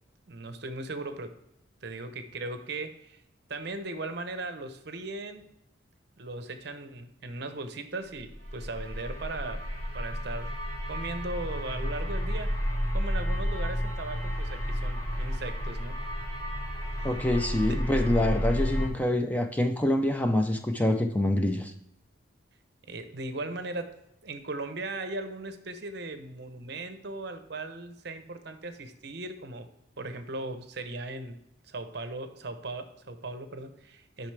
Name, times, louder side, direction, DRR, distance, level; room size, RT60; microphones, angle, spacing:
voice 1, 0.3-1.4 1.8-3.2 3.5-5.4 6.2-9.7 9.9-10.6 10.9-12.6 12.9-16.0 17.0-17.2 17.7-17.8 22.9-24.0 24.2-29.7 30.0-31.4 31.6-34.3, right 2 dB, 55° right, 9 dB, 0.7 m, -38 dB
sound 1, 8.2-18.9, equal, 25° left, 1.8 m, -31 dB
voice 2, 17.0-21.7, left 1 dB, 10° left, 5 dB, 0.4 m, -26 dB
8.9 x 5.7 x 3.3 m, 0.82 s
head